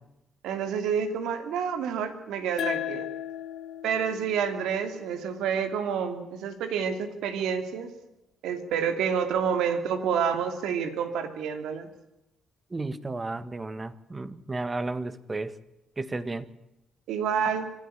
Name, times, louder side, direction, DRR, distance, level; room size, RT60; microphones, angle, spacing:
voice 1, 0.4-3.0 3.8-7.9 8.4-11.9 17.1-17.7, right 7 dB, 85° right, 2.7 m, -28 dB
sound 1, 2.6-5.8, left 11 dB, 70° left, 1.4 m, -36 dB
voice 2, 12.7-15.6 16.0-16.5, right 2 dB, 25° right, 1.5 m, -33 dB
25.5 x 13.0 x 9.9 m
cardioid pair, 90°, 0 cm